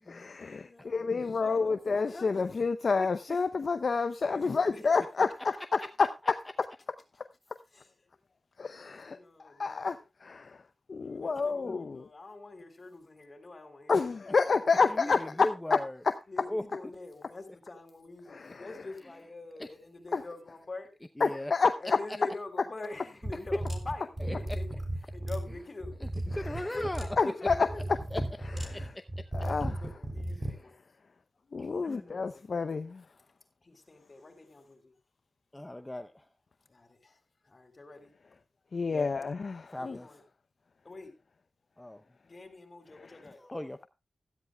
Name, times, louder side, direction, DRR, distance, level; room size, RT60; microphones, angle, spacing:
voice 1, 0.0-6.4 8.6-10.6 10.9-12.0 13.9-15.8 16.0-16.2 18.3-18.7 20.1-20.2 21.2-22.0 26.4-26.8 27.2-27.7 28.7-28.9 29.3-29.7 31.5-33.0 38.7-40.0, left 4 dB, 65° left, 0.6 m, -29 dB
voice 2, 0.6-2.7 4.2-4.9 7.7-7.9 9.1-10.0 11.0-15.4 16.3-21.0 21.8-24.7 25.1-26.0 26.5-27.8 28.7-28.9 29.3-30.8 31.8-32.6 33.6-34.9 36.7-38.4 39.8-40.2 40.8-41.2 42.2-43.4, left 2 dB, 45° left, 3.6 m, -46 dB
voice 3, 15.0-16.0 16.5-16.6 19.6-19.7 21.2-21.5 23.5-23.6 24.2-24.3 26.3-27.1 28.1-28.2 28.5-29.0 30.3-30.5 31.6-32.1 35.5-36.3 38.9-39.1 39.7-40.1 41.8-42.0 43.4-43.9, left 1 dB, 15° left, 0.7 m, -37 dB
sound 1, 23.2-30.6, right 1 dB, 25° right, 3.4 m, -35 dB
16.0 x 13.5 x 2.3 m
cardioid pair, 60°, 0 cm